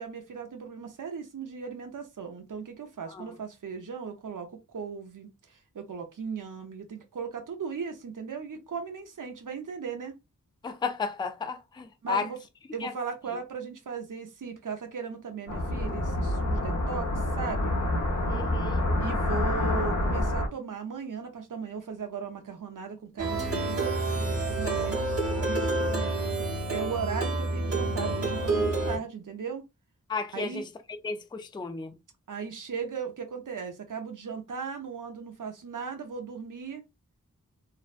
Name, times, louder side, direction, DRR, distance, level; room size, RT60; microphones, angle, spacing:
voice 1, 0.0-10.1 12.0-12.4 12.7-17.8 19.0-26.3 26.7-29.6 30.3-30.6 32.3-36.8, right 5 dB, 70° right, 0.7 m, -37 dB
voice 2, 10.6-12.3 12.8-12.9 18.3-18.9 30.1-30.6 31.0-31.9, left 5 dB, 15° left, 0.4 m, -33 dB
sound 1, 15.5-20.5, left 1 dB, 60° left, 0.9 m, -27 dB
Plucked string instrument, 23.2-29.0, right 2 dB, 45° right, 0.9 m, -28 dB
2.5 x 2.1 x 2.4 m
wide cardioid pair, 45°, 32 cm